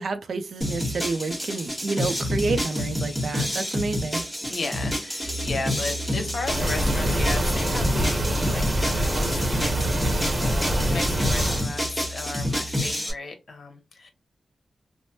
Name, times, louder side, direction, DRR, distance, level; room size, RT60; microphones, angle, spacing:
voice 1, 0.0-4.2, right 3 dB, 75° right, 0.5 m, -29 dB
sound 1, 0.6-13.1, left 1 dB, 5° right, 1.2 m, -29 dB
voice 2, 4.5-14.1, left 3 dB, 70° left, 0.8 m, -35 dB
sound 2, 5.2-12.9, right 1 dB, 15° left, 0.7 m, -37 dB
sound 3, 6.4-11.7, right 1 dB, 35° right, 0.9 m, -25 dB
3.1 x 2.1 x 2.8 m
wide cardioid pair, 105°, 0 cm